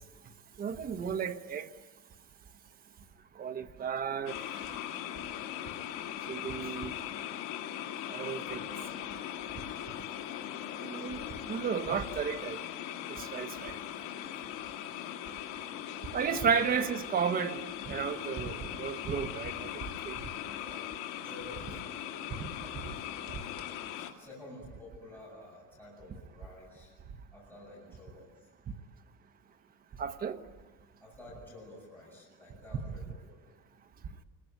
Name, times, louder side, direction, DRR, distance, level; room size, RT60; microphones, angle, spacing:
voice 1, 0.6-1.7 3.4-4.6 6.3-6.9 8.1-8.6 10.8-12.6 13.1-13.8 16.1-20.2 22.4-22.5 23.3-23.4 30.0-30.4 32.8-32.9, right 7 dB, 25° right, 1.1 m, -33 dB
sound 1, 4.3-24.1, left 11 dB, 70° left, 2.5 m, -40 dB
voice 2, 8.1-9.1 15.2-15.7 16.3-16.8 20.3-23.2 23.9-27.0 27.3-28.5 30.4-30.6 31.0-33.5, left 2 dB, 5° left, 7.5 m, -51 dB
28.5 x 21.5 x 9.3 m
cardioid pair, 170°, 33 cm